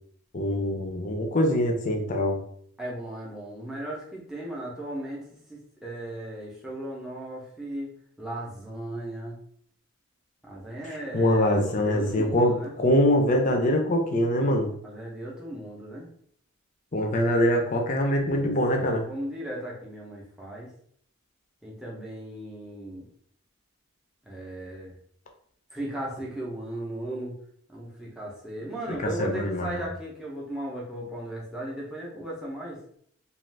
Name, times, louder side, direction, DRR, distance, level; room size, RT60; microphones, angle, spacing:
voice 1, 0.3-2.4 11.1-14.7 16.9-19.0 29.2-29.8, left 1 dB, 35° left, 2 dB, 0.5 m, -23 dB
voice 2, 2.8-7.9 8.2-9.4 10.4-12.7 14.8-16.1 18.2-20.7 21.6-23.1 24.2-24.9 25.7-27.4 27.7-32.8, right 1 dB, 5° right, -5 dB, 0.6 m, -36 dB
2.5 x 2.4 x 3.3 m, 0.64 s
head